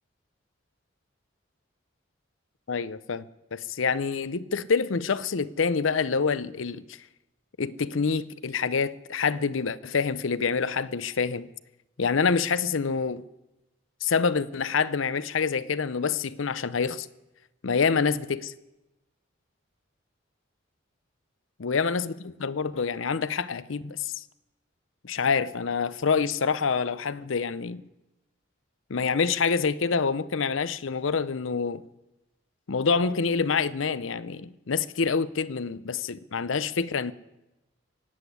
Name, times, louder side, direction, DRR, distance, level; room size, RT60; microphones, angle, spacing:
voice 1, 2.7-3.3 3.5-7.0 7.6-11.5 12.0-13.3 14.0-17.1 17.6-18.5 21.6-24.2 25.0-27.8 28.9-31.8 32.7-37.1, left 5 dB, 80° left, 0.6 m, -27 dB
16.5 x 8.2 x 9.9 m
head